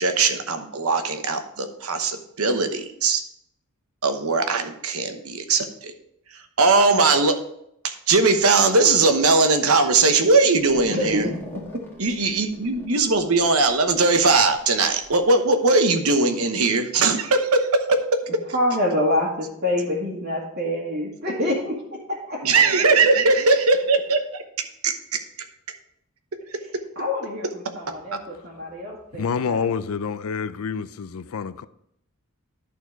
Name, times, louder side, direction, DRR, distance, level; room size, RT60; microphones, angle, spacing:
voice 1, 0.0-3.2 4.0-5.9 6.3-7.4 7.8-11.3 12.0-18.0 22.4-25.2, right 3 dB, 70° right, 1.0 m, -20 dB
sound 1, 10.5-15.2, left 1 dB, 10° left, 1.4 m, -41 dB
voice 2, 10.9-11.8 18.5-22.6 27.0-29.8, left 1 dB, 50° right, 1.8 m, -27 dB
voice 3, 29.1-31.7, left 6 dB, 70° left, 0.5 m, -27 dB
11.0 x 4.4 x 4.6 m
head